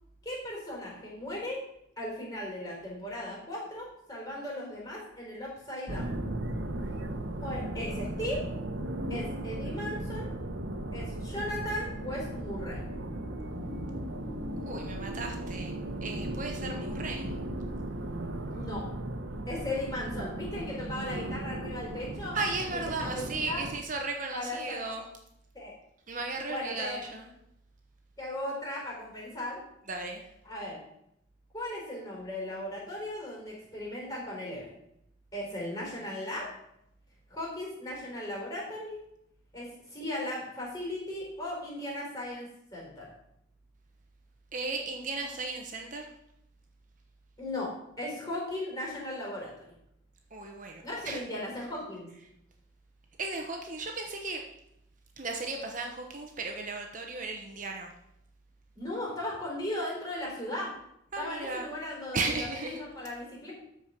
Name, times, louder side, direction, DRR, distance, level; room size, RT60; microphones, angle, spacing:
voice 1, 0.2-1.6 2.0-6.1 7.4-8.4 9.1-10.3 10.9-12.8 18.5-18.8 19.5-22.4 22.7-23.6 24.3-25.0 25.5-25.7 26.5-27.0 28.2-29.6 30.4-30.8 31.5-34.7 35.3-36.5 37.3-39.0 39.5-43.1 47.4-47.7 48.0-49.7 50.8-52.1 58.7-60.7 61.2-63.5, left 1 dB, 20° left, -3 dB, 4.7 m, -37 dB
sound 1, 5.9-23.8, right 1 dB, 75° right, 1.1 m, -36 dB
voice 2, 14.6-15.7 16.0-17.3 22.3-25.1 26.1-27.3 29.9-30.2 44.5-46.1 50.3-51.2 53.2-54.4 55.2-57.9 61.1-61.7 62.1-62.8, right 3 dB, 40° right, 2 dB, 1.0 m, -35 dB
13.5 x 4.9 x 6.0 m, 0.78 s
head